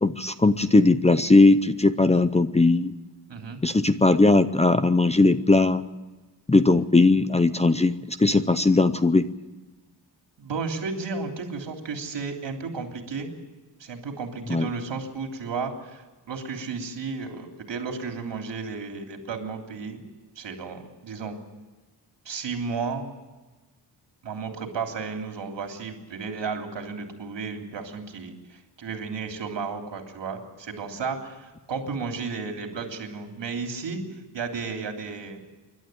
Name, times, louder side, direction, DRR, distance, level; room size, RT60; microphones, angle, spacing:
voice 1, 0.0-2.9 3.6-5.8 6.5-9.3 14.5-14.7, left 3 dB, 15° left, 11 dB, 0.6 m, -19 dB
voice 2, 3.3-3.6 10.4-13.3 13.8-20.0 20.3-21.4 22.2-23.1 24.2-34.0 34.3-35.4, right 4 dB, 80° right, 3 dB, 3.3 m, -33 dB
27.5 x 12.0 x 9.3 m, 1.2 s
wide cardioid pair, 180°, 43 cm